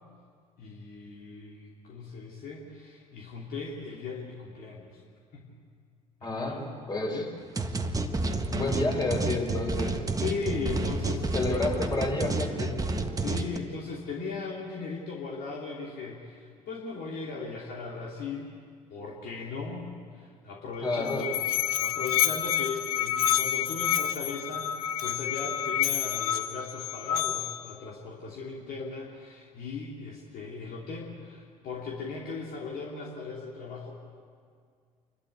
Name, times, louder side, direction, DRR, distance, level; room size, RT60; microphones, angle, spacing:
voice 1, 0.6-5.0 5.3-5.6 6.2-6.7 7.1-7.3 10.2-11.6 13.2-18.5 18.9-34.0, left 4 dB, 50° left, -2 dB, 2.9 m, -38 dB
voice 2, 6.2-7.2 8.5-10.0 10.6-10.8 11.3-12.8 20.8-21.3, left 2 dB, 20° left, 1 dB, 5.1 m, -30 dB
sound 1, 7.6-13.6, right 2 dB, 20° right, 1.5 m, -30 dB
Musical instrument, 20.7-27.7, left 10 dB, 75° left, 0.7 m, -29 dB
28.5 x 13.0 x 8.4 m, 2.1 s
figure-of-eight pair, 60°, 18 cm